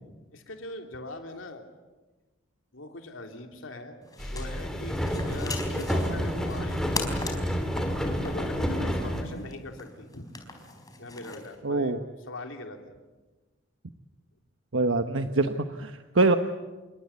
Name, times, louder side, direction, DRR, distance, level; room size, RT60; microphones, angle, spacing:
voice 1, 0.3-1.7 2.7-6.9 8.0-10.3 11.0-13.0, left 2 dB, 90° left, 4 dB, 3.2 m, -41 dB
sound 1, 4.0-11.6, left 3 dB, 20° left, 4.3 m, -41 dB
sound 2, 4.2-9.2, equal, 5° left, 3.2 m, -29 dB
voice 2, 11.6-12.0 14.7-16.4, right 2 dB, 90° right, 7 dB, 1.2 m, -24 dB
27.5 x 24.0 x 8.4 m, 1.2 s
head